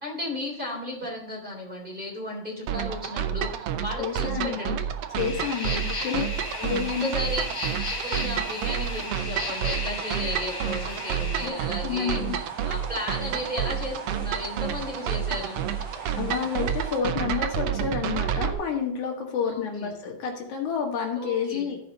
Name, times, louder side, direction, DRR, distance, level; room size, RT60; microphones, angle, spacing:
voice 1, 0.0-4.8 5.7-6.3 7.0-7.6 7.9-15.6 19.4-19.9 21.1-21.7, left 1 dB, 15° right, -2 dB, 3.3 m, -34 dB
sound 1, 2.7-18.5, right 9 dB, 70° right, 1.6 m, -30 dB
voice 2, 4.0-4.8 5.2-6.2 6.5-7.1 11.4-11.5 11.8-12.4 16.2-21.8, left 7 dB, 80° left, 1 dB, 3.1 m, -29 dB
sound 2, 5.2-11.5, left 3 dB, 55° left, 3.6 m, -35 dB
sound 3, 6.4-17.0, right 1 dB, 45° right, 5.1 m, -44 dB
14.5 x 5.1 x 4.0 m, 0.72 s
omnidirectional pair, 3.3 m